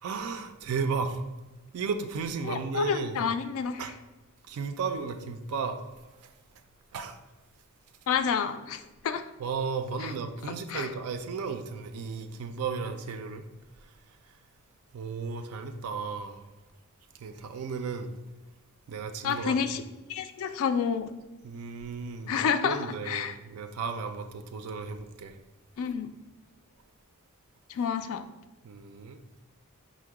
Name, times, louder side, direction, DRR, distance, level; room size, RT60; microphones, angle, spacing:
voice 1, 0.0-1.2 1.7-3.2 3.8-3.9 4.4-5.8 6.2-6.3 6.9-7.2 9.4-13.5 13.8-13.9 14.9-16.5 17.2-18.1 18.9-19.6 21.4-25.4 28.6-29.2, right 5 dB, 75° right, 9 dB, 0.4 m, -34 dB
voice 2, 2.4-3.8 8.1-9.2 10.0-10.1 10.7-10.9 19.2-19.8 20.1-21.1 22.3-23.3 25.8-26.1 27.7-28.2, left 6 dB, 65° left, 10 dB, 0.3 m, -29 dB
4.5 x 2.1 x 4.7 m, 1.1 s
head